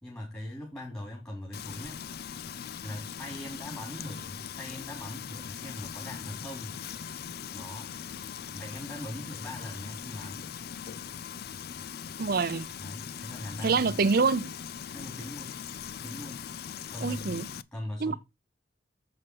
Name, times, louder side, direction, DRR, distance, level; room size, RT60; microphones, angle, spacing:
voice 1, 0.0-2.0 2.8-6.8 7.5-7.9 8.5-10.5 12.8-13.9 14.9-15.6 16.0-16.5 16.9-18.2, left 1 dB, 15° left, 3.2 m, -41 dB
Frying (food), 1.5-17.6, left 8 dB, 60° left, 0.5 m, -40 dB
voice 2, 12.2-12.7 13.6-14.6 17.0-17.5 18.0-18.1, right 4 dB, 55° right, 0.6 m, -26 dB
7.3 x 6.3 x 4.6 m
head